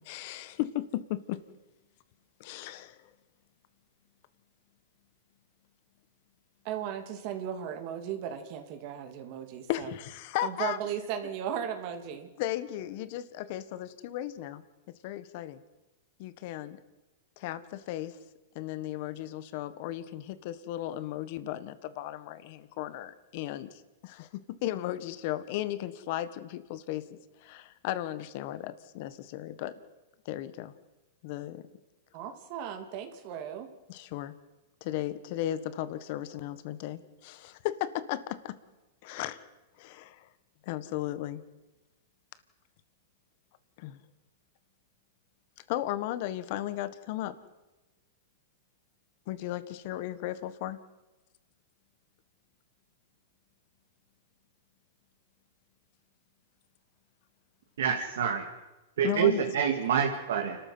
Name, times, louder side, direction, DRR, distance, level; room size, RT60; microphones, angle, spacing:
voice 1, 0.0-1.4 2.4-3.0 9.7-10.8 12.4-14.6 15.0-15.6 16.2-16.8 17.4-18.2 18.5-29.8 30.2-30.7 31.2-31.7 33.9-34.3 34.8-38.6 39.0-39.4 39.8-40.3 40.6-41.4 43.8-44.0 45.7-47.4 49.3-50.8 59.0-59.4, left 13 dB, 50° left, 14 dB, 1.5 m, -35 dB
voice 2, 6.6-9.9 10.4-12.3 32.1-33.7, right 9 dB, 50° right, 7 dB, 2.7 m, -36 dB
voice 3, 57.8-58.4 59.0-60.6, right 8 dB, 80° right, 2 dB, 2.6 m, -27 dB
29.0 x 13.0 x 7.9 m, 1.1 s
hypercardioid pair, 140°, 0 cm